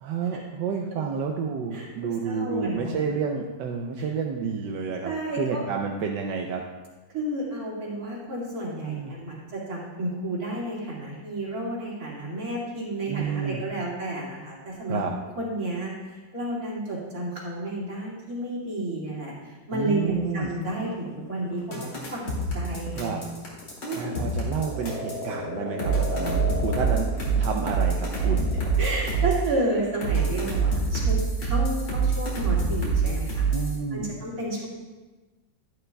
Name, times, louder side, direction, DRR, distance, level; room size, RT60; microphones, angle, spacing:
voice 1, 0.0-5.1 5.4-6.6 8.8-9.1 13.1-13.6 14.9-15.1 19.7-20.5 22.9-23.2 24.0-28.5 33.5-34.2, right 6 dB, 80° right, 1 dB, 1.3 m, -30 dB
voice 2, 1.7-3.0 4.0-4.1 5.0-5.7 7.1-15.0 15.4-23.2 23.8-24.2 28.2-28.3 28.8-33.5 33.9-34.7, right 1 dB, 55° right, -5 dB, 2.8 m, -31 dB
sound 1, 20.5-29.4, left 2 dB, 60° left, 1.5 m, -36 dB
sound 2, 21.7-25.2 25.8-29.5 30.0-33.8, right 4 dB, 80° left, 3.0 m, -25 dB
11.5 x 11.0 x 2.3 m, 1.3 s
omnidirectional pair, 1.9 m